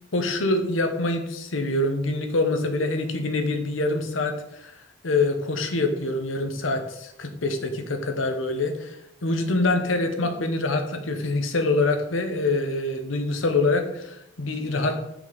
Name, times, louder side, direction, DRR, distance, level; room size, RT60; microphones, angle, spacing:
voice 1, 0.1-4.7 5.0-9.0 9.2-15.0, left 2 dB, 85° left, 6 dB, 1.0 m, -25 dB
6.0 x 5.3 x 4.0 m, 0.79 s
head